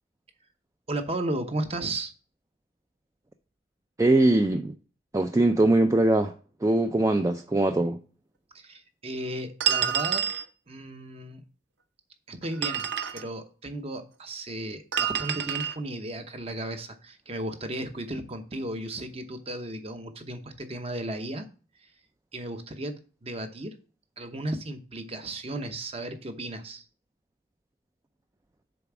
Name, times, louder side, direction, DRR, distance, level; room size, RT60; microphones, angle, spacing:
voice 1, 0.9-2.1 8.5-10.2 10.7-11.4 12.3-12.9 13.1-21.5 21.8-21.9 22.3-23.8 24.2-26.9, right 1 dB, 35° right, 0.8 m, -35 dB
voice 2, 4.0-4.7 5.1-6.3 6.6-8.0, right 2 dB, 15° right, 0.4 m, -22 dB
sound 1, 9.6-10.5 12.4-13.3 14.9-15.8, right 9 dB, 75° right, 0.7 m, -27 dB
7.1 x 4.1 x 5.9 m
head